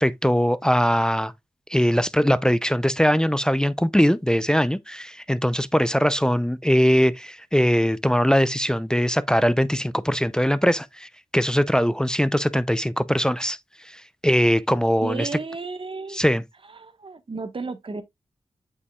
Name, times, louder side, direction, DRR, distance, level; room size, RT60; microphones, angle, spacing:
voice 1, 0.0-1.3 1.7-13.6 13.9-15.3 16.1-16.4, equal, 5° left, 0.5 m, -21 dB
voice 2, 15.0-16.2 16.7-18.0, right 4 dB, 50° right, 1.2 m, -33 dB
8.2 x 5.4 x 2.3 m
cardioid pair, 60°, 12 cm